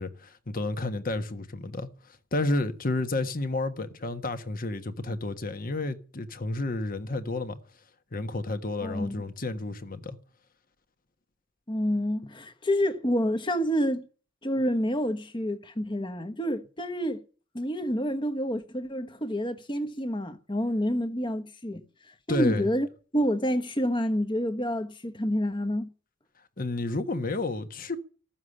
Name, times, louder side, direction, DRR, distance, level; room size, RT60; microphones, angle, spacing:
voice 1, 0.0-7.6 8.1-10.2 22.3-22.7 26.6-28.0, left 2 dB, 45° left, 1.4 m, -31 dB
voice 2, 8.8-9.2 11.7-14.1 14.4-17.2 17.5-21.8 22.3-22.9 23.1-25.9, equal, 25° left, 1.2 m, -28 dB
14.5 x 7.3 x 9.8 m
head